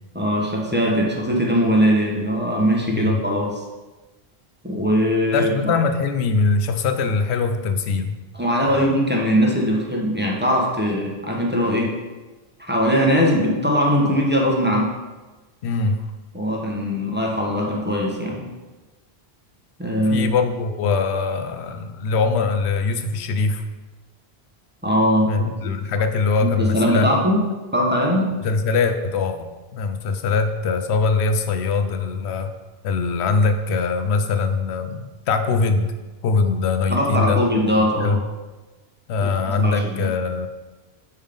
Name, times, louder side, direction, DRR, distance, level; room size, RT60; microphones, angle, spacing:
voice 1, 0.1-3.6 4.6-5.7 8.3-11.9 12.6-14.9 16.3-18.4 19.8-20.3 24.8-25.3 25.6-25.7 26.6-27.4 27.7-28.3 36.9-38.2 39.2-40.1, equal, 10° right, -2 dB, 0.8 m, -20 dB
voice 2, 5.3-8.2 8.7-9.0 15.6-16.0 20.1-23.6 25.2-27.1 28.4-32.5 32.8-35.9 36.2-37.4 38.0-38.2 39.1-40.5, left 4 dB, 85° left, 8 dB, 0.8 m, -22 dB
5.5 x 3.6 x 5.1 m, 1.2 s
omnidirectional pair, 1.1 m